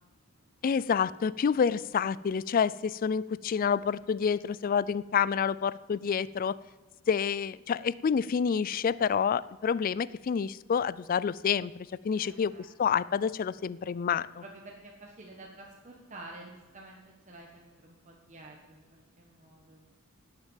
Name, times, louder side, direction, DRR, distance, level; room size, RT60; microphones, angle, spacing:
voice 1, 0.6-6.5 7.1-11.7 12.0-12.5 12.8-14.4, left 6 dB, 40° left, 19 dB, 0.3 m, -28 dB
voice 2, 12.1-12.7 14.4-19.8, right 2 dB, 35° right, -1 dB, 1.3 m, -50 dB
17.5 x 6.7 x 7.3 m, 1.3 s
head